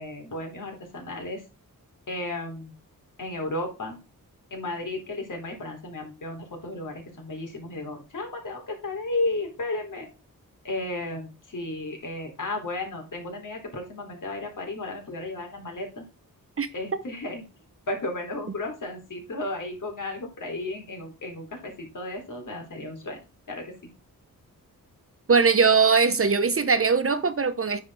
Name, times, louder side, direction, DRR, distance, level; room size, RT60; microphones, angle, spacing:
voice 1, 0.0-1.4 2.1-2.7 3.2-4.0 4.5-10.1 10.6-16.0 16.7-17.4 17.9-23.2 23.5-23.7, left 2 dB, 60° left, 3.4 m, -34 dB
voice 2, 25.3-27.8, right 5 dB, 40° right, 0.8 m, -20 dB
9.5 x 4.4 x 4.8 m
wide cardioid pair, 115°, 35 cm